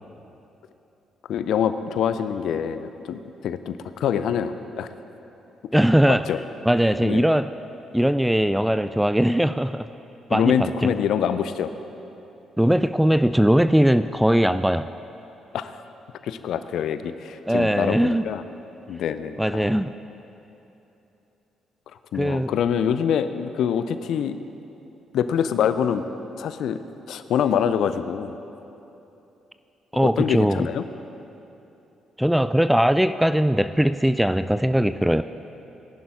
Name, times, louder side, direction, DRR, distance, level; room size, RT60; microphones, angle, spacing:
voice 1, 1.3-4.9 6.3-6.4 7.0-7.2 10.3-11.7 15.5-15.8 16.2-18.4 18.9-19.8 22.1-24.4 25.1-26.0 26.4-26.8 27.1-28.3 30.0-30.9, left 8 dB, 60° left, 11 dB, 0.5 m, -25 dB
voice 2, 5.7-6.3 6.6-7.5 7.9-9.9 10.3-10.9 12.6-14.9 17.5-18.3 19.4-19.9 22.1-22.5 29.9-30.7 32.2-35.2, equal, 5° right, 12 dB, 0.3 m, -20 dB
19.0 x 11.0 x 3.7 m, 3.0 s
figure-of-eight pair, 45°, 0 cm